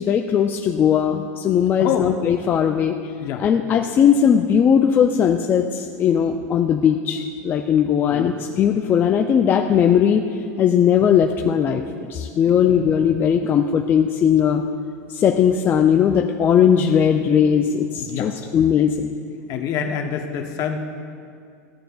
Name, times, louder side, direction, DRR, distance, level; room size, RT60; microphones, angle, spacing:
voice 1, 0.0-2.9 3.4-10.3 10.6-11.8 12.1-14.6 15.1-19.1, left 8 dB, 25° left, 3 dB, 0.3 m, -18 dB
voice 2, 1.8-2.1 3.2-3.8 8.1-8.3 12.6-12.8 13.4-13.5 17.9-18.3 19.5-20.8, left 8 dB, 45° left, 4 dB, 0.8 m, -27 dB
14.0 x 6.5 x 2.3 m, 2.4 s
supercardioid pair, 135°, 8 cm